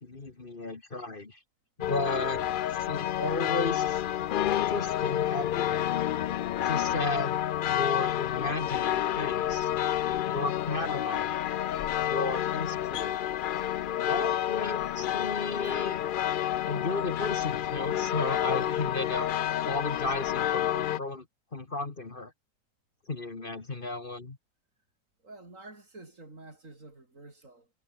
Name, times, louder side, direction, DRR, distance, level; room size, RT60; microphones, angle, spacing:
voice 1, 0.0-1.4 1.8-2.4 2.7-4.0 4.7-5.9 6.6-9.7 10.2-11.4 12.0-13.2 14.0-16.0 16.7-19.3 19.7-21.3 21.5-22.3 23.1-24.4, left 2 dB, 40° left, 2.1 m, -34 dB
sound 1, 1.8-21.0, left 11 dB, 65° left, 0.5 m, -29 dB
voice 2, 25.2-27.7, right 2 dB, 80° right, 5.0 m, -49 dB
omnidirectional pair, 1.4 m